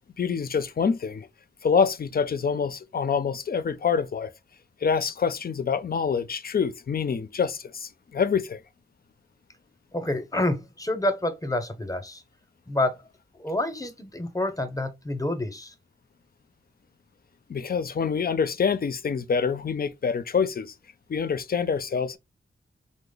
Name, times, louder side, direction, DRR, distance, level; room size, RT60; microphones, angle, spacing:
voice 1, 0.2-1.3 1.6-4.3 4.8-8.6 17.5-20.7 21.1-22.2, left 6 dB, 50° left, 0.5 m, -26 dB
voice 2, 9.9-12.2 12.7-13.0 13.3-15.7, left 1 dB, 15° left, 0.7 m, -28 dB
3.0 x 2.0 x 3.7 m
cardioid pair, 50°, 20 cm